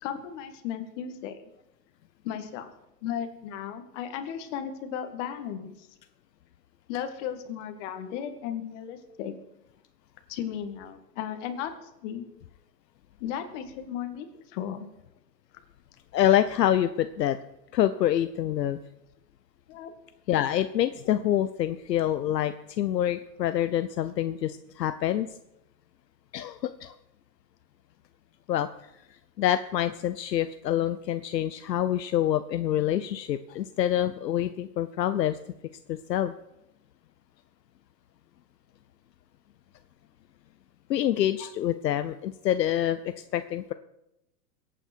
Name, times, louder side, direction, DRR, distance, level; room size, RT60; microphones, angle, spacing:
voice 1, 0.0-1.4 2.2-2.7 3.0-5.9 6.9-9.3 10.3-12.2 13.2-14.3 14.5-14.9 19.7-19.9, left 9 dB, 45° left, 7 dB, 2.1 m, -35 dB
voice 2, 16.1-17.4 17.7-18.8 20.3-25.3 26.3-26.9 28.5-28.7 29.4-35.4 35.9-36.3 40.9-43.7, left 11 dB, 80° left, 11 dB, 0.8 m, -26 dB
22.5 x 9.0 x 4.6 m, 0.89 s
hypercardioid pair, 120°, 49 cm